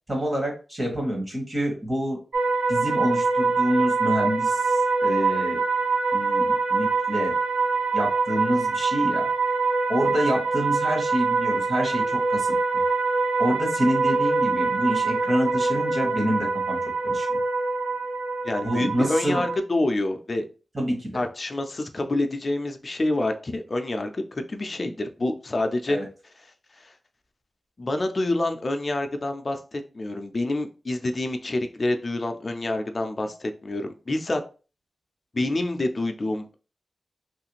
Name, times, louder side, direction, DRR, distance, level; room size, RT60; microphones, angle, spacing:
voice 1, 0.1-2.2 2.7-5.6 6.1-7.4 7.9-9.3 9.9-12.8 13.4-16.8 17.0-17.4 18.6-19.4 20.7-21.2 25.9-26.1, equal, 25° right, 0 dB, 1.0 m, -27 dB
sound 1, 2.3-19.6, right 4 dB, 70° right, 0.7 m, -24 dB
voice 2, 18.4-20.5 21.1-26.0 26.8-26.9 27.8-34.4 35.3-36.5, left 2 dB, 30° left, 6 dB, 0.4 m, -27 dB
3.1 x 2.4 x 2.9 m, 0.34 s
wide cardioid pair, 175°, 0 cm